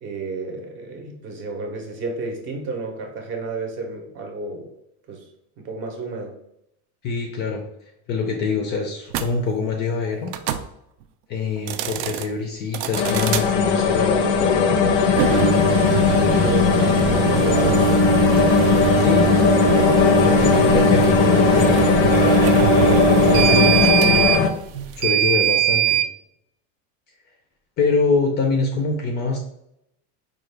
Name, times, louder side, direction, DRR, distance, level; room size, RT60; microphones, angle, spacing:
voice 1, 0.0-4.7 5.1-5.2 5.6-6.4 16.4-18.1, right 3 dB, 35° right, 3 dB, 0.7 m, -31 dB
voice 2, 7.0-7.6 8.1-10.3 11.3-14.9 19.0-19.4 20.2-22.3 23.2-24.3 25.0-26.0 27.8-29.4, left 4 dB, 30° left, 3 dB, 0.4 m, -25 dB
sound 1, 9.1-9.3 10.3-10.7 11.6-12.3 12.7-13.5 15.1-26.1, right 10 dB, 75° right, 0.5 m, -21 dB
sound 2, 12.9-24.5, left 6 dB, 85° left, 0.6 m, -18 dB
4.8 x 2.3 x 3.2 m, 0.78 s
cardioid pair, 170°, 35 cm